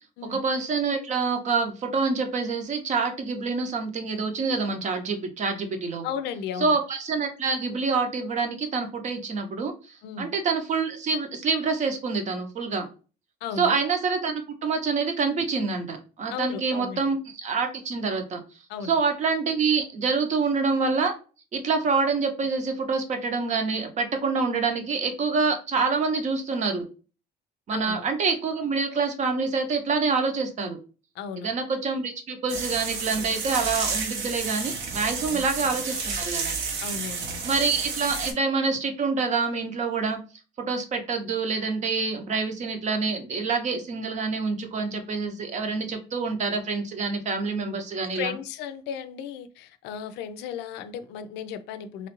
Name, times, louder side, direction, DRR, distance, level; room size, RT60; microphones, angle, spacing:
voice 1, 0.3-6.1 6.6-12.9 13.6-18.4 18.8-21.1 21.5-26.9 27.7-30.8 31.4-36.6 37.4-40.2 40.7-48.3, right 4 dB, 45° right, 0.7 m, -26 dB
voice 2, 6.0-6.8 10.0-10.3 13.4-13.8 16.3-17.1 18.7-19.0 27.7-28.1 31.2-31.5 35.3-35.5 36.8-37.4 48.1-52.1, left 8 dB, 85° left, 0.4 m, -35 dB
sound 1, 32.5-38.3, right 5 dB, 80° right, 0.8 m, -31 dB
3.1 x 2.4 x 2.9 m
cardioid pair, 110°, 17 cm